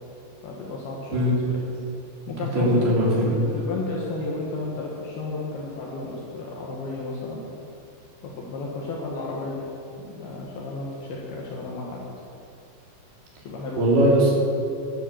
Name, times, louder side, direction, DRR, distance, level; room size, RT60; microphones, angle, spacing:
voice 1, 0.4-1.6 2.3-7.4 8.2-9.7 10.0-12.0 13.4-14.0, left 3 dB, 65° left, -3 dB, 3.0 m, -33 dB
voice 2, 2.5-3.3 13.8-14.3, equal, 55° right, -5 dB, 4.8 m, -19 dB
13.0 x 11.5 x 7.6 m, 2.6 s
omnidirectional pair, 5.5 m